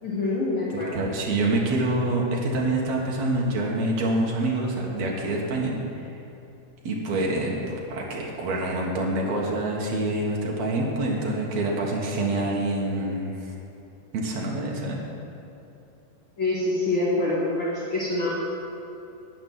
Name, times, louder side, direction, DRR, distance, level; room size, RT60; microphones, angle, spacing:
voice 1, 0.0-1.0 16.4-18.3, left 2 dB, 60° left, -8 dB, 1.2 m, -26 dB
voice 2, 0.7-5.7 6.8-13.5 14.1-15.0, right 2 dB, 60° right, -2 dB, 1.9 m, -26 dB
12.0 x 6.0 x 9.4 m, 2.7 s
omnidirectional pair, 5.1 m